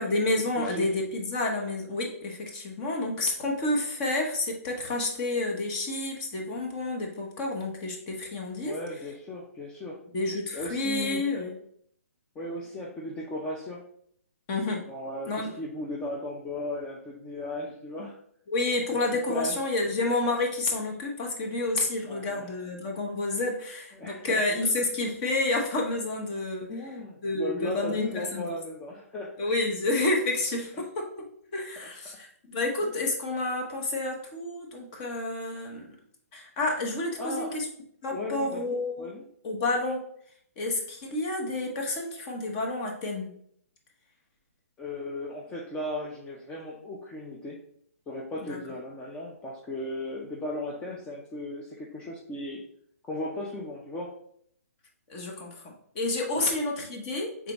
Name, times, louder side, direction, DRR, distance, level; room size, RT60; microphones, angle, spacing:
voice 1, 0.0-8.8 10.1-11.5 14.5-14.8 15.3-15.5 18.5-26.7 27.2-28.4 29.4-31.2 31.5-35.9 36.3-37.7 38.0-39.1 39.4-40.0 40.6-43.3 48.5-48.6 55.1-57.5, left 2 dB, 30° left, 1 dB, 1.0 m, -29 dB
voice 2, 0.6-0.9 8.6-10.0 10.5-11.2 12.4-13.8 14.9-18.2 18.9-19.0 19.3-19.6 22.1-22.5 23.9-24.4 26.7-29.3 37.2-37.5 38.1-38.6 39.0-39.2 44.8-47.6 48.1-52.6 53.1-54.1 56.3-56.5, left 1 dB, 15° left, -3 dB, 0.5 m, -36 dB
4.9 x 3.4 x 3.0 m, 0.65 s
hypercardioid pair, 150°, 8 cm